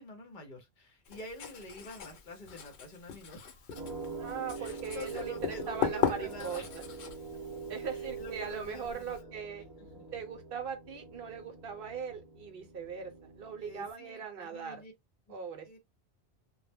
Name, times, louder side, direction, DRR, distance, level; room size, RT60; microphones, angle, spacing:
voice 1, 0.0-3.8 4.5-6.7 7.9-9.3 9.8-10.1 13.6-14.9 15.3-15.4 15.6-15.8, left 2 dB, 50° left, 0.8 m, -47 dB
Writing, 1.0-9.2, left 8 dB, 85° left, 0.9 m, -38 dB
sound 1, 3.7-13.9, right 4 dB, 25° right, 0.6 m, -44 dB
voice 2, 4.2-6.6 7.7-9.6 10.1-14.8 15.3-15.8, right 6 dB, 65° right, 0.8 m, -40 dB
2.1 x 2.0 x 3.3 m
omnidirectional pair, 1.1 m